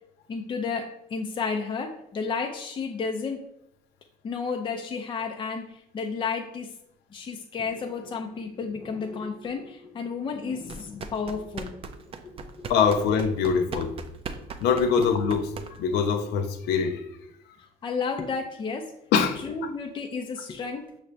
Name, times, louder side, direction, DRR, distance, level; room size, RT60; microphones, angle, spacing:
voice 1, 0.3-3.4 4.2-6.7 7.1-11.8 12.1-12.8 17.8-18.9 19.4-20.9, left 5 dB, 30° left, 3 dB, 0.4 m, -32 dB
sound 1, 10.6-16.0, right 5 dB, 35° right, 0.4 m, -39 dB
voice 2, 12.7-13.9 14.6-17.0 19.1-19.7, left 6 dB, 80° left, 8 dB, 0.6 m, -24 dB
5.6 x 2.6 x 3.2 m, 0.79 s
cardioid pair, 110°, 17 cm